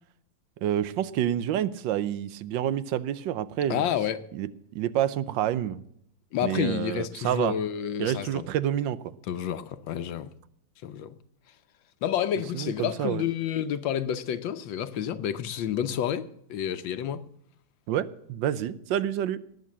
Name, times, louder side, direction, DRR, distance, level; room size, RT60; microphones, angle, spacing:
voice 1, 0.6-3.8 4.3-5.8 6.4-7.6 8.0-9.1 12.5-13.2 17.9-19.4, right 11 dB, 75° right, 1.4 m, -28 dB
voice 2, 3.7-4.2 6.3-8.5 9.3-10.3 10.8-11.1 12.0-17.2, left 9 dB, 75° left, 1.5 m, -29 dB
18.0 x 6.7 x 7.4 m
omnidirectional pair, 2.1 m